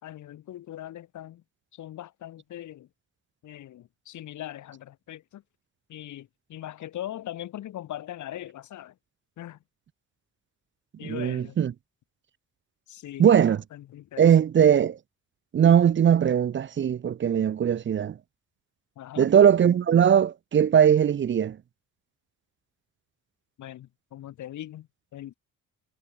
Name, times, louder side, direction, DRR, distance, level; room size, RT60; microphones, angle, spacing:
voice 1, 0.0-1.4 1.7-2.9 3.4-5.4 5.9-8.9 9.4-9.6 11.0-11.6 12.9-14.3 19.0-19.3 23.6-25.3, left 12 dB, 70° left, 1.9 m, -40 dB
voice 2, 11.0-11.7 13.2-13.6 14.2-15.0 15.5-18.2 19.2-21.6, right 8 dB, 40° right, 0.7 m, -20 dB
cardioid pair, 135°, 31 cm